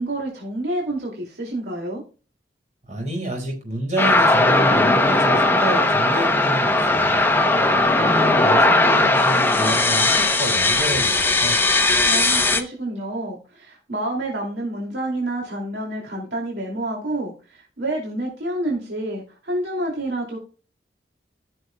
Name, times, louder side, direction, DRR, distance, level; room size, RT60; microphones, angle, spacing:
voice 1, 0.0-2.0 12.0-20.4, right 1 dB, 75° right, -1 dB, 2.5 m, -28 dB
voice 2, 2.9-7.2 7.7-11.6, right 1 dB, 40° right, 0 dB, 5.0 m, -29 dB
sound 1, 4.0-12.6, left 2 dB, 15° left, 0.8 m, -18 dB
15.0 x 6.3 x 2.2 m, 0.34 s
head